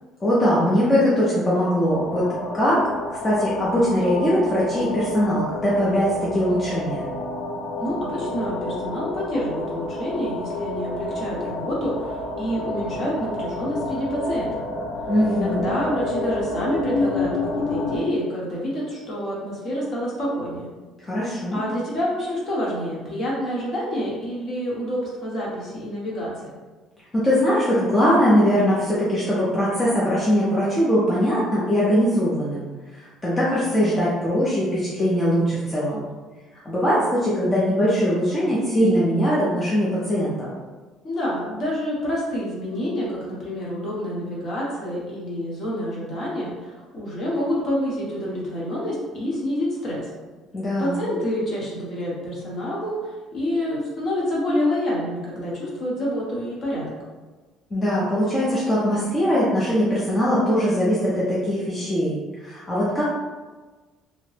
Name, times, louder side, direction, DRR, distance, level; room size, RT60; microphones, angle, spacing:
voice 1, 0.2-2.3 2.5-2.8 3.1-7.1 15.1-15.7 21.0-21.6 27.1-36.0 36.7-40.5 50.5-51.0 57.7-63.1, equal, 15° left, -8 dB, 0.5 m, -21 dB
sound 1, 1.8-18.0, left 2 dB, 65° left, 0.6 m, -29 dB
voice 2, 7.8-14.6 15.3-20.7 21.5-26.5 41.0-50.0 50.8-56.9, equal, 40° left, -5 dB, 1.0 m, -27 dB
2.8 x 2.1 x 3.2 m, 1.3 s
cardioid pair, 160°, 0 cm